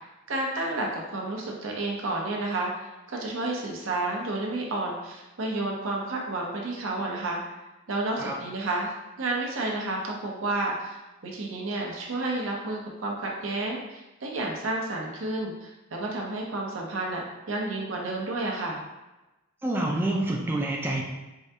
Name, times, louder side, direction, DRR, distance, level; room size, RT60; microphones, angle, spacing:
voice 1, 0.3-7.4 7.9-18.8, right 2 dB, 75° right, -1 dB, 0.7 m, -31 dB
voice 2, 19.6-21.0, right 1 dB, 10° right, -2 dB, 0.3 m, -27 dB
4.6 x 2.2 x 2.7 m, 1.0 s
head